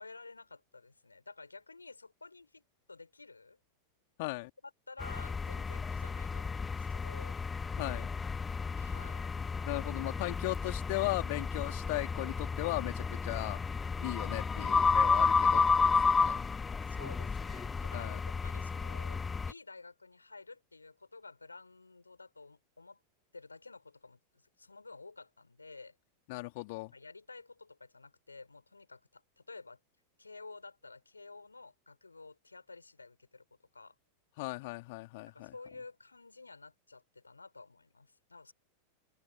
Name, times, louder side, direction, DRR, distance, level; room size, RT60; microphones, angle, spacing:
voice 1, 0.0-2.6 2.9-3.6 4.9-7.4 8.7-9.3 16.9-23.0 23.3-24.2 24.6-26.0 26.9-29.8 30.2-33.4 33.7-33.9 35.3-38.5, left 3 dB, 80° left, 6.3 m, -52 dB
voice 2, 4.2-4.5 7.8-8.1 9.7-16.4 17.9-18.2 26.3-26.9 34.4-35.5, left 23 dB, 50° left, 3.3 m, -37 dB
sound 1, 5.0-19.5, left 5 dB, 15° left, 0.5 m, -32 dB
open air
figure-of-eight pair, 90°, 0 cm